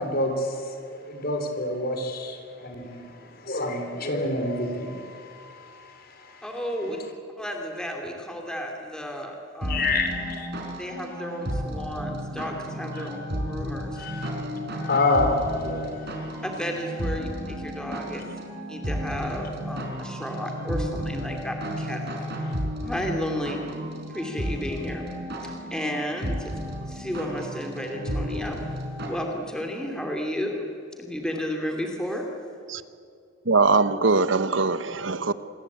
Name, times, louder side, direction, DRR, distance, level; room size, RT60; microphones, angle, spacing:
voice 1, 0.0-6.5 9.7-10.5 12.9-13.1 13.9-14.3 14.8-16.2 18.1-18.2, left 2 dB, 50° left, 3.9 m, -28 dB
voice 2, 6.4-7.0 7.4-9.9 10.8-13.2 13.5-14.0 16.4-18.2 18.7-22.3 22.8-23.6 24.1-25.0 25.4-26.5 26.9-28.6 29.1-30.6 31.0-32.3, equal, 5° left, 2.8 m, -32 dB
sound 1, 9.6-29.1, equal, 55° right, 5.0 m, -33 dB
voice 3, 33.4-35.3, right 3 dB, 70° right, 1.1 m, -21 dB
27.5 x 21.0 x 8.7 m
head